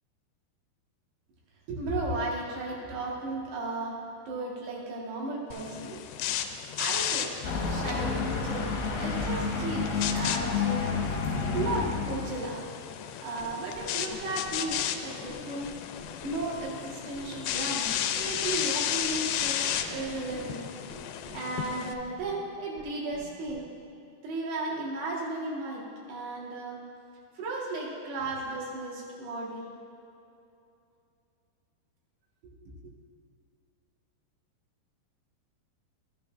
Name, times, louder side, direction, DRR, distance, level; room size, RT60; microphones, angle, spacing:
voice 1, 1.7-4.0 4.3-6.0 6.8-8.7 9.0-10.9 11.5-12.6 13.2-15.7 16.2-20.7 21.3-23.7 24.2-25.8 26.1-26.8 27.4-29.7 32.4-32.7, right 2 dB, 85° right, -4 dB, 3.7 m, -35 dB
sound 1, 5.5-21.9, left 10 dB, 85° left, 2.6 m, -34 dB
sound 2, 7.4-12.4, left 5 dB, 70° left, 2.7 m, -30 dB
sound 3, 13.4-13.5 13.7-13.8 14.1-14.2 14.4-14.7 15.3-15.4 15.6-15.7 16.0-16.6 17.1-17.2 17.5-17.6 17.8-17.9 18.2-18.5 19.0-19.1 19.4-19.5 19.7-20.4 20.9-21.0 21.2-21.3 21.6-21.7 21.9-22.2 22.8-22.9 23.1-23.2 23.5-23.6, left 1 dB, 30° left, 2.8 m, -47 dB
13.0 x 12.0 x 2.5 m, 2.7 s
omnidirectional pair, 4.6 m